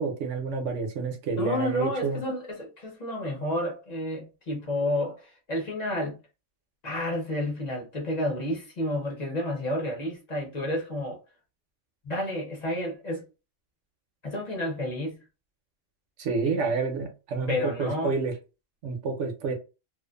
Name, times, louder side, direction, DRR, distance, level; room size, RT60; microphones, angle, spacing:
voice 1, 0.0-2.2 16.2-18.3 18.8-19.5, right 4 dB, 65° right, 0.9 m, -29 dB
voice 2, 1.4-6.2 6.8-11.2 12.0-13.2 14.2-15.2 16.5-16.6 17.5-18.1, left 1 dB, 35° left, 0.8 m, -30 dB
2.5 x 2.4 x 2.3 m
omnidirectional pair, 1.5 m